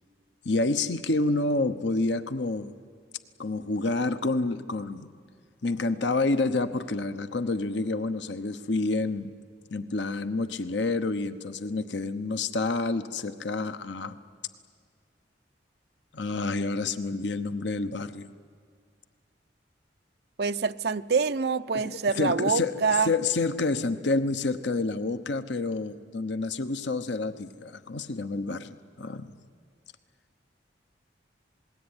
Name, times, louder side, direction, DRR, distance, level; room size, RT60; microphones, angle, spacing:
voice 1, 0.4-2.7 3.4-5.1 5.6-9.3 9.7-14.2 16.1-18.3 21.7-22.7 23.0-29.3, left 3 dB, 75° left, 11 dB, 1.0 m, -28 dB
voice 2, 20.4-23.1, right 5 dB, 60° right, 8 dB, 0.7 m, -26 dB
27.5 x 20.0 x 9.7 m, 2.1 s
head